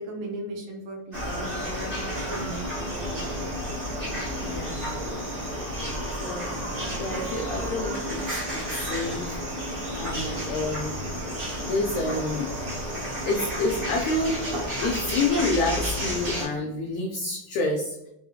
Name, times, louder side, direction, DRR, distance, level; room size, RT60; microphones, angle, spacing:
voice 1, 0.0-3.4, right 1 dB, 75° right, 0 dB, 2.4 m, -38 dB
sound 1, 1.1-16.4, equal, 50° right, 0.8 m, -31 dB
voice 2, 4.4-4.9 6.1-6.5 7.0-9.4 9.9-10.9 11.5-12.5 13.2-18.0, left 2 dB, 85° left, 1 dB, 1.7 m, -28 dB
5.5 x 2.8 x 2.7 m, 0.83 s
omnidirectional pair, 4.0 m